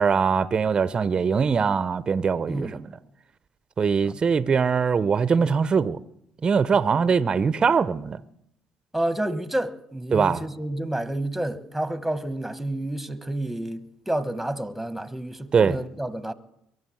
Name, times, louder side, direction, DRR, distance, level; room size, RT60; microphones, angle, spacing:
voice 1, 0.0-3.0 3.8-6.0 6.4-8.2 10.1-10.4 15.5-15.8, right 6 dB, 40° right, 0.6 m, -22 dB
voice 2, 2.5-2.8 8.9-16.3, right 1 dB, 5° right, 1.1 m, -29 dB
22.5 x 7.8 x 7.7 m
supercardioid pair, 80°, 2 cm